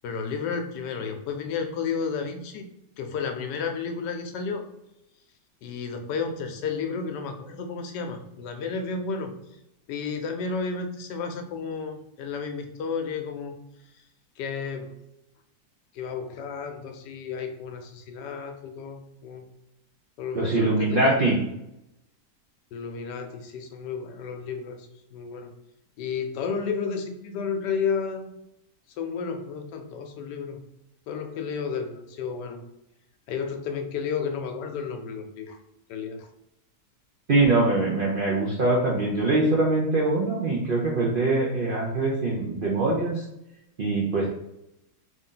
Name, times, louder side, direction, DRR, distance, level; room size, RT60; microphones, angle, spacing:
voice 1, 0.0-2.7 3.0-4.7 5.6-9.3 9.9-13.6 14.4-14.9 15.9-19.5 20.2-21.2 22.7-24.9 25.1-25.6 26.0-28.3 29.0-30.6 31.1-32.7 33.3-35.6 35.9-36.3, left 5 dB, 85° left, 6 dB, 1.2 m, -32 dB
voice 2, 20.3-21.4 37.3-43.2 43.8-44.3, right 2 dB, 70° right, -3 dB, 0.5 m, -23 dB
3.3 x 2.6 x 3.8 m, 0.85 s
omnidirectional pair, 1.8 m